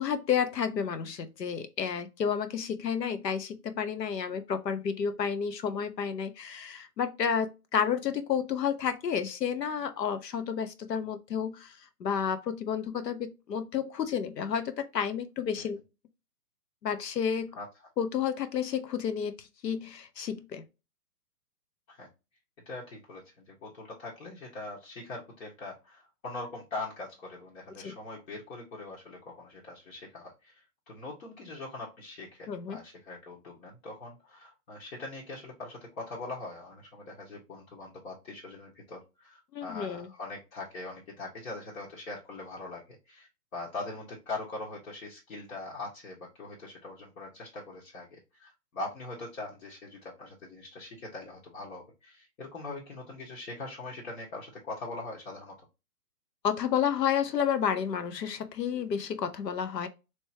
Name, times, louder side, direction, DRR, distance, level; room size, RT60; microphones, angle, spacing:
voice 1, 0.0-15.8 16.8-17.6 18.0-20.6 27.8-27.9 32.5-32.8 39.5-40.1 56.4-59.9, left 7 dB, 90° left, 0.9 m, -31 dB
voice 2, 22.6-55.5, left 2 dB, 60° left, 1.5 m, -42 dB
3.3 x 3.0 x 2.7 m
hypercardioid pair, 160°, 48 cm